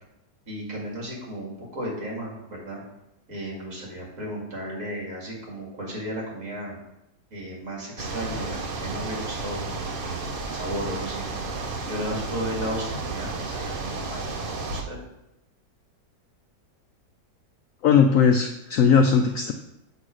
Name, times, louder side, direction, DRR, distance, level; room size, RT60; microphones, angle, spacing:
voice 1, 0.5-2.8 3.3-6.7 7.3-11.2 11.8-14.3 14.7-15.0, equal, 50° right, -3 dB, 2.6 m, -34 dB
sound 1, 8.0-14.8, right 3 dB, 80° right, 0.4 m, -32 dB
voice 2, 17.8-19.5, left 6 dB, 80° left, 5 dB, 0.7 m, -18 dB
7.8 x 3.1 x 6.2 m, 0.89 s
omnidirectional pair, 1.9 m